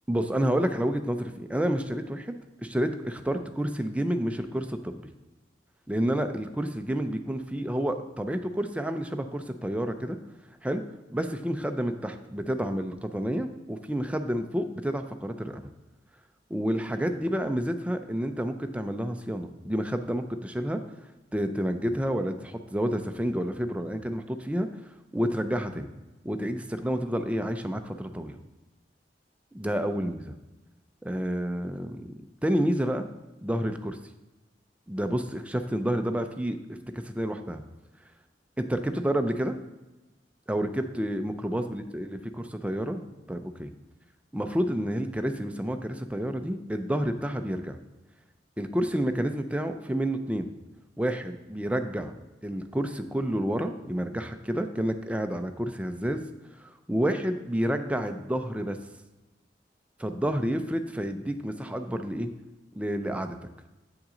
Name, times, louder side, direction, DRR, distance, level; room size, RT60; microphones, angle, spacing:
voice 1, 0.1-2.4 2.6-5.0 5.9-10.2 10.6-15.6 16.5-20.8 21.3-24.7 25.1-25.9 26.2-28.4 29.5-30.3 31.0-32.1 32.4-33.1 33.4-34.0 34.9-36.6 36.9-37.6 38.6-39.6 40.5-43.7 44.3-47.8 48.6-50.5 51.0-52.2 52.4-56.3 56.6-58.8 60.0-62.3 62.7-63.4, equal, 10° right, 7 dB, 0.5 m, -29 dB
8.3 x 5.9 x 3.8 m, 1.1 s
head